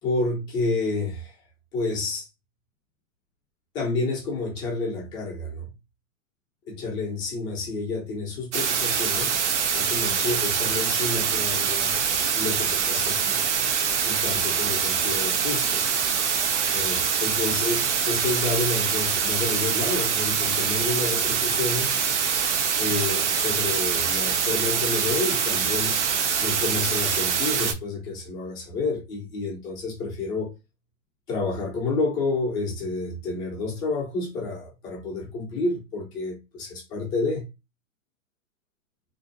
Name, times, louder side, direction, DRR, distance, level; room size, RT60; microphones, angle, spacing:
voice 1, 0.0-1.4 1.7-2.3 3.7-5.7 6.7-9.4 9.7-12.0 12.3-13.4 14.1-15.8 16.7-21.9 22.8-26.0 26.4-30.5 31.3-37.4, left 3 dB, 10° left, 0.5 m, -29 dB
sound 1, 8.5-27.7, right 7 dB, 60° right, 0.6 m, -24 dB
2.5 x 2.1 x 2.5 m
hypercardioid pair, 140°, 39 cm